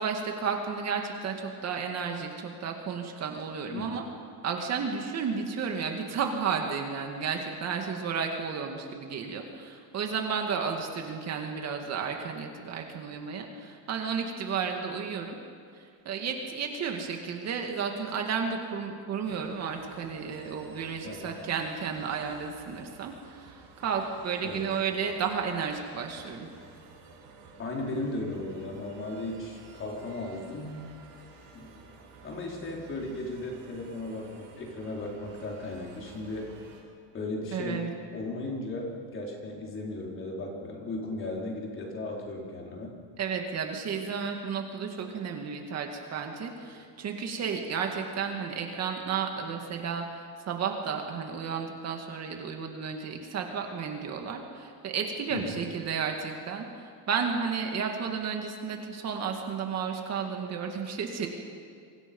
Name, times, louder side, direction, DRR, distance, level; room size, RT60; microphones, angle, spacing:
voice 1, 0.0-4.0 4.4-15.4 15.8-26.5 37.5-37.9 43.2-61.3, right 6 dB, 35° right, 3 dB, 2.1 m, -32 dB
voice 2, 3.7-4.1 21.0-21.4 24.4-24.7 27.6-30.8 31.5-31.8 32.2-36.5 37.1-37.8 38.1-42.9 55.3-55.6, left 2 dB, 30° left, -1 dB, 4.5 m, -36 dB
sound 1, 19.2-36.8, right 4 dB, 50° right, 7.4 m, -52 dB
27.5 x 24.5 x 5.5 m, 2.2 s
cardioid pair, 160°, 43 cm